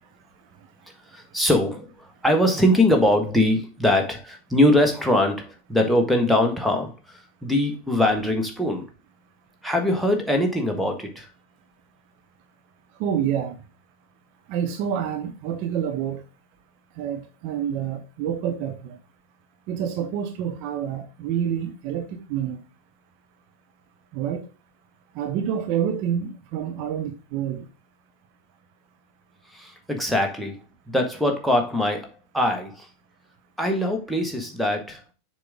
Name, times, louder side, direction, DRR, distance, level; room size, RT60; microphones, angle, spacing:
voice 1, 1.1-8.9 9.6-11.3 29.5-30.6 30.9-32.9 33.6-35.0, left 1 dB, ahead, 1.5 m, -22 dB
voice 2, 13.0-13.5 14.5-16.2 17.0-19.0 19.7-22.6 24.1-24.4 25.2-27.6, right 9 dB, 45° right, 0.9 m, -28 dB
6.7 x 4.9 x 3.6 m
figure-of-eight pair, 90°, 0 cm